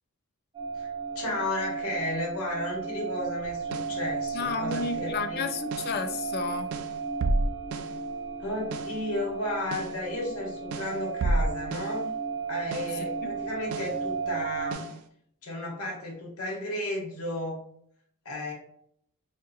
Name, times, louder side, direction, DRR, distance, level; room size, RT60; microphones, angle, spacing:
sound 1, 0.5-14.7, right 5 dB, 25° right, 1.0 m, -34 dB
voice 1, 1.1-5.5 8.4-12.1 12.5-14.9 15.4-17.6 18.2-18.5, left 1 dB, 85° left, -3 dB, 1.2 m, -33 dB
sound 2, 3.5-4.0 4.7-5.0 5.7-6.0 6.7-8.0 8.7-9.0 9.7-10.0 10.7-12.0 12.7-13.0 13.7-14.0 14.7-15.0, right 2 dB, 75° right, 0.4 m, -31 dB
voice 2, 4.3-6.7 13.0-13.4, left 4 dB, 45° left, 7 dB, 0.4 m, -32 dB
4.2 x 2.4 x 2.6 m, 0.68 s
head